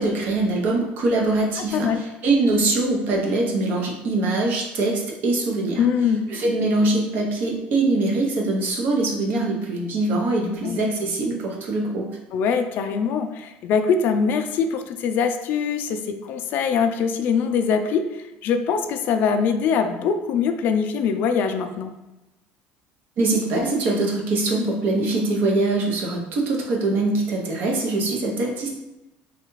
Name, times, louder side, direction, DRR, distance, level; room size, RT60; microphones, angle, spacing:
voice 1, 0.0-5.8 6.3-12.1 23.2-28.7, right 2 dB, 55° right, 0 dB, 0.8 m, -23 dB
voice 2, 5.8-6.3 10.4-10.8 12.3-21.9, left 6 dB, 55° left, 7 dB, 0.3 m, -23 dB
3.3 x 2.4 x 3.1 m, 0.98 s
cardioid pair, 145°, 4 cm